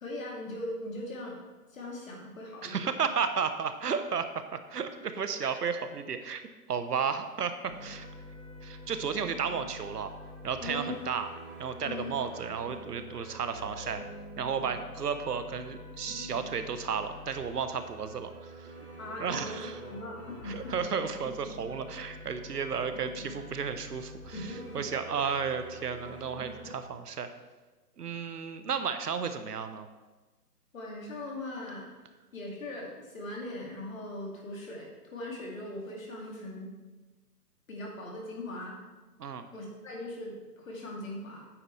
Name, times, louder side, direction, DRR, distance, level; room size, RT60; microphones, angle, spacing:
voice 1, 0.0-1.4 1.7-2.9 5.4-5.5 10.6-10.9 11.8-12.1 19.0-20.7 24.3-25.1 30.7-31.9 32.3-36.7 37.7-38.8 39.5-41.5, left 1 dB, 55° left, -2 dB, 2.6 m, -40 dB
voice 2, 2.6-4.3 4.5-6.4 6.7-8.1 8.6-10.1 10.4-11.3 11.6-14.0 14.4-18.7 19.2-19.7 20.4-24.4 24.7-27.3 28.0-29.9 39.2-39.5, right 6 dB, 75° right, 9 dB, 1.0 m, -33 dB
sound 1, 7.7-26.7, equal, 5° right, 2.2 m, -46 dB
8.8 x 8.1 x 3.4 m, 1.2 s
hypercardioid pair, 165°, 48 cm